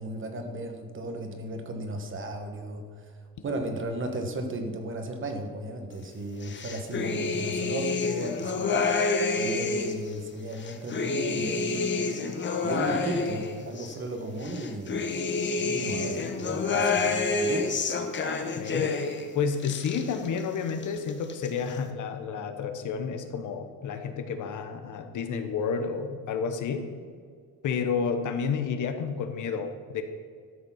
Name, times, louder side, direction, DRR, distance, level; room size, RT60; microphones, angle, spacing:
voice 1, 0.0-3.1 3.4-8.9 9.4-12.2 12.6-15.1 15.6-17.7, right 1 dB, 35° right, 5 dB, 1.4 m, -35 dB
sound 1, 6.4-10.1 10.5-14.0 14.4-19.3 19.5-20.4 20.7-21.5, left 4 dB, 30° left, 1.0 m, -28 dB
voice 2, 18.5-26.9 27.6-30.0, left 6 dB, 55° left, 7 dB, 1.1 m, -30 dB
12.5 x 6.7 x 5.7 m, 2.1 s
cardioid pair, 135°, 37 cm